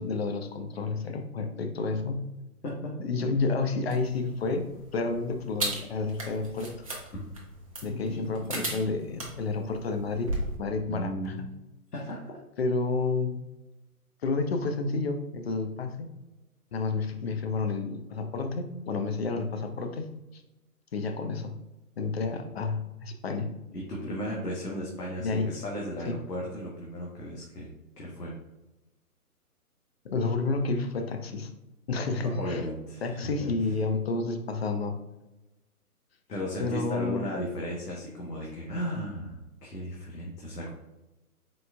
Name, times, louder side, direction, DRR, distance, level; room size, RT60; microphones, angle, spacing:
voice 1, 0.0-2.2 3.0-6.8 7.8-11.3 12.6-13.4 14.2-16.1 16.7-20.4 20.9-21.6 22.0-23.5 25.2-25.6 26.0-26.2 30.0-31.5 31.9-32.6 33.0-35.0 36.6-37.3, left 3 dB, 45° left, 6 dB, 0.5 m, -30 dB
sound 1, 3.9-10.6, right 1 dB, 25° right, 0.4 m, -37 dB
voice 2, 7.8-8.8 10.8-11.4 11.9-12.3 22.3-22.4 23.7-27.7 28.0-28.3 32.4-33.5 36.3-40.7, equal, 90° left, -3 dB, 1.2 m, -35 dB
4.5 x 3.8 x 2.3 m, 1.0 s
hypercardioid pair, 145°, 46 cm